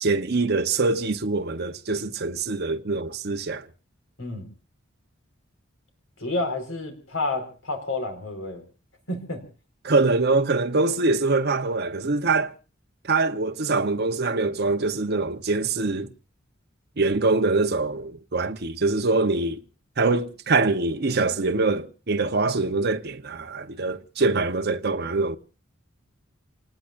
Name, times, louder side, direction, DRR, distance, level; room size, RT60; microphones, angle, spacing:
voice 1, 0.0-3.7 9.8-12.5 13.1-16.1 17.0-19.6 20.0-25.4, right 3 dB, 55° right, 1.0 m, -24 dB
voice 2, 6.2-8.6 9.1-9.4, left 2 dB, 85° left, 4.9 m, -30 dB
29.0 x 19.0 x 2.6 m
head